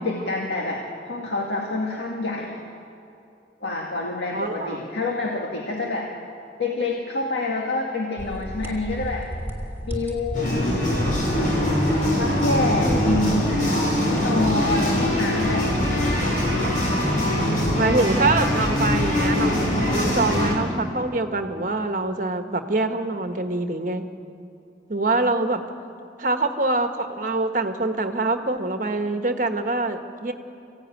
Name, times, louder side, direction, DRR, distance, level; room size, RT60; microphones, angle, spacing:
voice 1, 0.0-2.6 3.6-6.1 6.6-9.3 9.8-10.8 12.2-16.7, left 2 dB, 85° left, -1 dB, 2.0 m, -27 dB
voice 2, 4.3-4.9 12.8-13.1 17.8-19.7 19.9-24.1 24.9-25.6 26.2-30.3, right 2 dB, 50° right, 6 dB, 1.3 m, -25 dB
sound 1, 8.2-14.5, equal, 10° right, 2.6 m, -35 dB
sound 2, 10.3-20.5, left 1 dB, 50° left, 6.0 m, -22 dB
24.5 x 16.0 x 9.2 m, 2.7 s
head